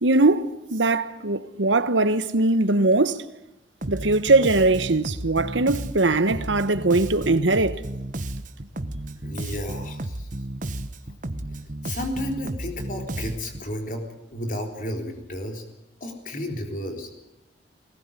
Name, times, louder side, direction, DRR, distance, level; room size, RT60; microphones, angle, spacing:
voice 1, 0.0-3.2 3.9-7.8, right 2 dB, 80° right, 1.3 m, -21 dB
Bass guitar, 3.8-13.7, right 1 dB, 45° right, 1.2 m, -33 dB
voice 2, 9.2-10.3 11.8-14.0 14.3-15.6 16.0-17.1, left 1 dB, 45° left, 3.9 m, -32 dB
20.5 x 20.0 x 9.9 m
head